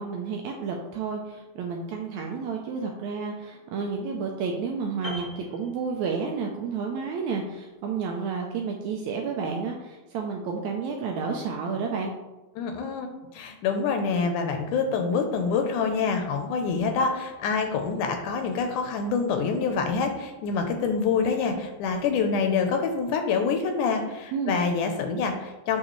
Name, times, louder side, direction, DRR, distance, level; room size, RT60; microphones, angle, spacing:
voice 1, 0.0-12.1 24.3-24.6, right 5 dB, 80° right, 1 dB, 1.7 m, -31 dB
Piano, 5.0-6.5 6.8-7.0, equal, 20° left, 0.6 m, -40 dB
voice 2, 12.6-13.1 13.3-25.8, left 5 dB, 80° left, 5 dB, 2.0 m, -26 dB
6.5 x 6.1 x 3.1 m, 1.1 s
omnidirectional pair, 3.9 m